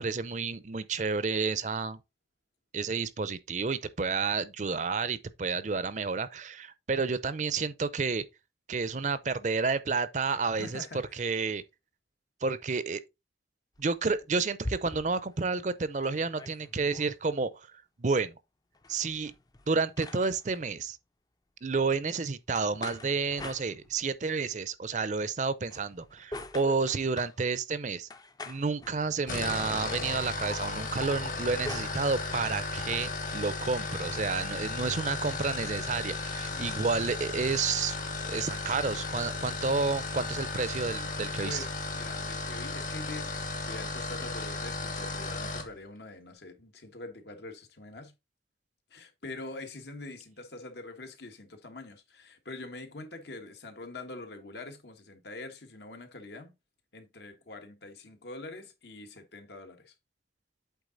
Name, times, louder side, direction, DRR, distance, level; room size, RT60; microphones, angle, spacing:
voice 1, 0.0-2.0 2.7-8.2 8.7-10.8 11.2-11.6 12.4-13.0 13.8-18.3 18.9-19.3 19.7-21.0 21.6-28.1 28.5-38.0 38.3-41.6, right 4 dB, 45° right, 0.6 m, -30 dB
voice 2, 10.5-11.2 36.4-36.8 41.4-48.1 48.9-56.5 56.9-59.9, left 2 dB, 70° left, 1.4 m, -44 dB
sound 1, 13.8-15.3 15.7-15.8 16.0-17.1 18.7-20.6 22.5-24.2 25.6-27.4 28.1-29.5 31.0-32.5, left 2 dB, 20° left, 0.5 m, -44 dB
sound 2, 29.2-45.7, left 3 dB, 50° left, 1.4 m, -35 dB
8.2 x 3.8 x 3.9 m
head